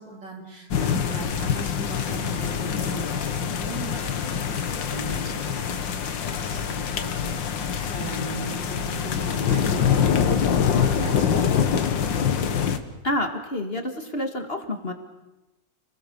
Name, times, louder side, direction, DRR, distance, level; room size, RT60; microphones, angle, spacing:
voice 1, 0.0-5.9 6.2-12.3, right 2 dB, 80° right, 1 dB, 4.5 m, -38 dB
sound 1, 0.7-12.8, left 7 dB, 85° left, 2.1 m, -25 dB
voice 2, 13.0-14.9, left 1 dB, 35° left, 5 dB, 2.1 m, -28 dB
30.0 x 20.0 x 7.1 m, 1.0 s
omnidirectional pair, 1.9 m